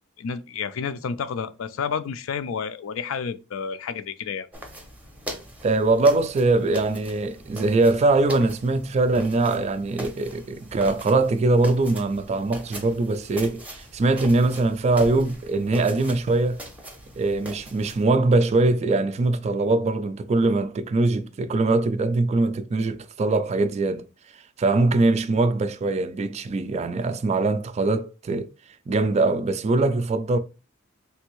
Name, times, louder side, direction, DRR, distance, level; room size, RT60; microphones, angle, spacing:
voice 1, 0.2-4.5, left 6 dB, 70° left, 0.4 m, -30 dB
sound 1, 4.5-18.0, equal, 5° right, 0.6 m, -41 dB
voice 2, 5.6-16.6 17.2-24.0 24.6-28.5 28.9-30.4, right 2 dB, 30° right, 0.3 m, -22 dB
3.3 x 2.6 x 3.0 m
head